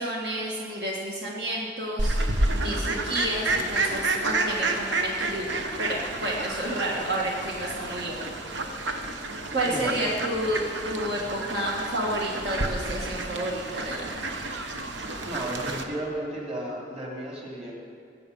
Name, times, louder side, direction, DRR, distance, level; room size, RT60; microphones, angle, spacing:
voice 1, 0.0-2.2 2.5-8.2 9.5-14.2, right 1 dB, 65° right, -3 dB, 1.7 m, -30 dB
Fowl, 2.0-15.8, right 2 dB, 80° right, 1.1 m, -30 dB
voice 2, 9.6-10.0 15.3-17.7, right 1 dB, 35° right, -2 dB, 2.8 m, -33 dB
20.5 x 8.0 x 5.5 m, 2.4 s
head